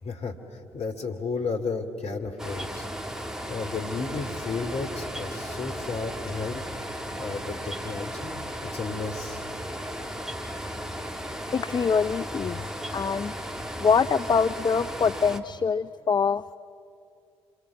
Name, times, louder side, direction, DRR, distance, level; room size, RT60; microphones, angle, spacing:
voice 1, 0.0-2.9 3.5-9.4, left 4 dB, 50° left, 5 dB, 2.6 m, -33 dB
sound 1, 2.4-15.4, equal, 5° right, 2.2 m, -36 dB
sound 2, 2.5-14.9, right 1 dB, 30° right, 2.7 m, -47 dB
voice 2, 11.5-13.3 13.8-16.4, left 5 dB, 30° left, 14 dB, 0.5 m, -24 dB
26.5 x 24.0 x 7.3 m, 2.5 s
figure-of-eight pair, 45°, 14 cm